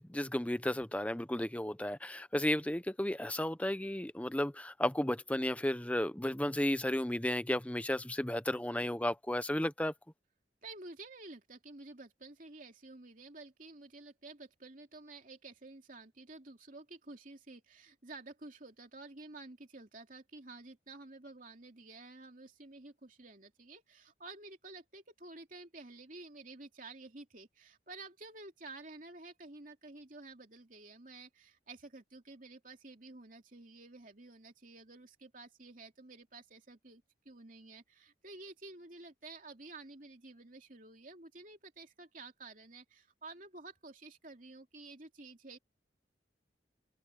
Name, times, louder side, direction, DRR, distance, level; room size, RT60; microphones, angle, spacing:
voice 1, 0.0-9.9, left 1 dB, 10° left, 0.7 m, -33 dB
voice 2, 10.6-45.6, right 3 dB, 45° right, 2.9 m, -51 dB
open air
head